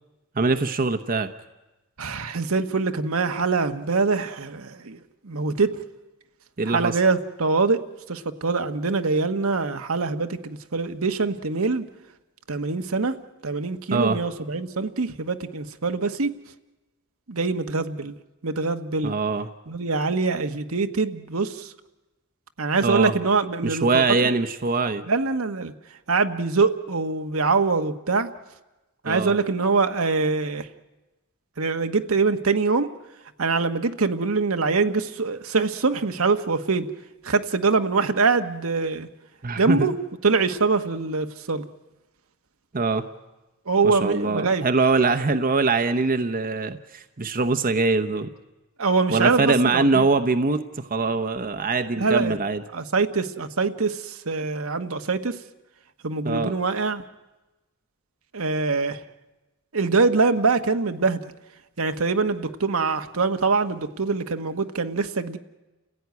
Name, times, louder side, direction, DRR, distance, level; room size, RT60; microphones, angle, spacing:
voice 1, 0.3-1.3 6.6-7.0 13.9-14.2 19.0-19.5 22.8-23.1 23.6-25.0 29.0-29.3 39.4-39.9 42.7-43.1 43.8-48.3 49.1-52.6 56.2-56.5, right 3 dB, 40° right, 9 dB, 0.9 m, -23 dB
voice 2, 2.0-5.7 6.7-11.8 12.5-13.2 13.4-16.3 17.3-18.1 18.4-19.1 19.7-21.7 22.6-24.3 25.1-25.7 26.1-28.3 29.0-30.7 31.6-32.9 33.4-36.9 37.2-39.1 39.6-39.9 40.2-41.7 43.7-44.6 48.8-50.1 51.9-52.4 52.7-55.4 56.0-57.0 58.3-59.0 59.7-61.2 61.8-65.4, right 4 dB, 75° right, 7 dB, 1.2 m, -24 dB
29.5 x 16.0 x 9.5 m, 1.1 s
head